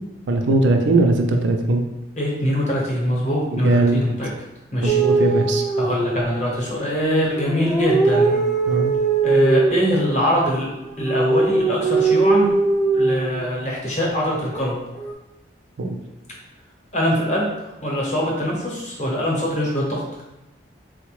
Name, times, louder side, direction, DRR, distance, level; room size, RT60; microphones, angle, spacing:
voice 1, 0.3-1.8 3.5-4.0 4.8-5.6 8.7-8.9 15.8-16.0, right 2 dB, 80° right, 4 dB, 0.4 m, -19 dB
voice 2, 2.2-4.3 4.7-5.0 5.8-8.3 9.2-10.7 11.0-12.5 12.9-14.8 16.9-20.0, equal, 40° left, -3 dB, 0.8 m, -23 dB
sound 1, 4.9-6.5 7.3-10.0 10.9-13.4 14.5-15.1, right 3 dB, 5° left, 0.3 m, -20 dB
3.9 x 2.1 x 3.0 m, 0.97 s
head